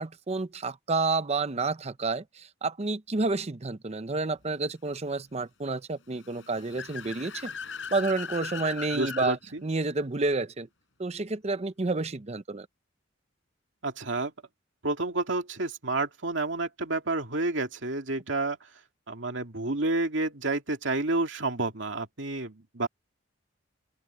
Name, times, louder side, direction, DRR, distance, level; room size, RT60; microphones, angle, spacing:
voice 1, 0.0-7.5 7.9-10.7 11.0-12.7, right 3 dB, 35° right, 0.7 m, -30 dB
Car / Accelerating revving vroom, 6.1-9.3, left 6 dB, 75° left, 4.0 m, -38 dB
voice 2, 8.9-9.6 13.8-14.3 14.8-18.6 19.1-22.9, right 2 dB, 70° right, 2.4 m, -30 dB
head